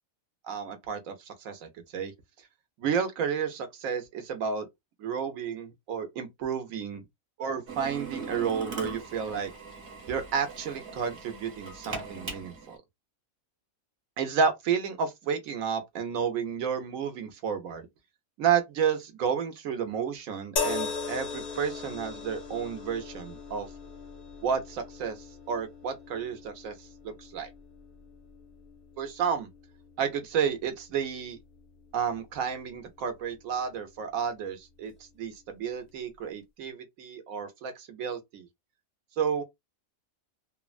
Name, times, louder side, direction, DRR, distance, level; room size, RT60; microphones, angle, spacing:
voice 1, 0.5-2.1 2.8-4.7 5.0-7.0 7.4-9.5 10.1-12.8 14.2-17.9 18.4-23.7 24.4-27.5 29.0-29.5 30.0-31.4 31.9-38.5 39.2-39.4, right 7 dB, 75° right, 1.1 m, -31 dB
Drill, 7.7-12.8, right 4 dB, 50° right, 1.1 m, -40 dB
sound 1, 20.6-33.9 34.8-35.0, left 5 dB, 55° left, 0.4 m, -40 dB
3.1 x 2.1 x 2.3 m
omnidirectional pair, 1.5 m